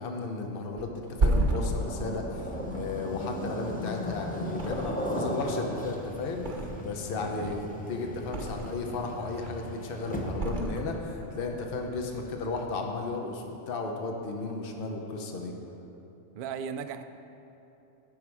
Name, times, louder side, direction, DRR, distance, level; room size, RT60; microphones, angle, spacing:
voice 1, 0.0-15.5, left 3 dB, 45° left, 2 dB, 1.0 m, -34 dB
Thump thud, 0.8-4.1 4.5-5.3 5.6-7.0 7.4-8.9 9.3-9.8 10.3-11.3 11.7-11.9, right 2 dB, 40° right, 0.9 m, -32 dB
sound 1, 1.5-10.6, equal, 10° left, 0.7 m, -37 dB
sound 2, 3.3-12.8, equal, 10° right, 1.3 m, -51 dB
voice 2, 7.1-7.6 16.3-17.0, right 7 dB, 65° right, 9 dB, 0.5 m, -37 dB
15.5 x 5.6 x 4.7 m, 2.9 s
omnidirectional pair, 1.4 m